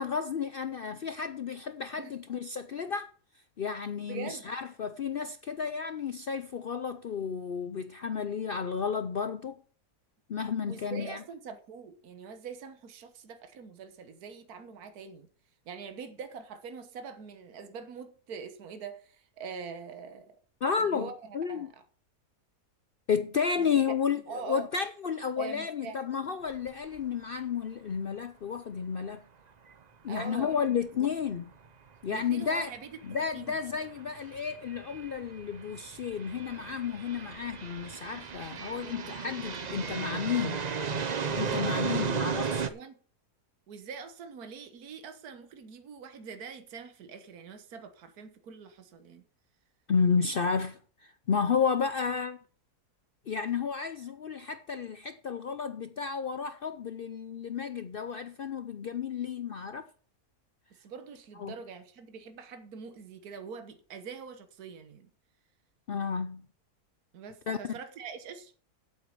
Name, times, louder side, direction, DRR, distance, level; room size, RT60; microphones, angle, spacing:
voice 1, 0.0-3.1 3.6-9.6 10.3-11.2 20.6-21.7 23.1-29.2 30.0-31.4 32.0-32.7 33.0-40.7 41.3-42.7 49.9-52.4 53.3-59.9 61.4-61.5 65.9-66.5 67.5-67.7, left 6 dB, 65° left, 0.5 m, -32 dB
voice 2, 4.0-4.5 10.7-15.3 15.7-20.4 20.8-21.7 23.6-23.7 24.3-24.7 25.4-26.0 30.1-30.6 32.1-33.6 41.7-42.3 42.6-43.0 43.7-49.2 60.8-65.1 67.1-68.5, right 5 dB, 70° right, 1.7 m, -44 dB
sound 1, 26.5-26.7 27.0-27.1 31.1-31.2 32.3-32.5 33.1-42.7, right 6 dB, 45° right, 0.6 m, -35 dB
8.5 x 8.2 x 7.0 m
omnidirectional pair, 1.7 m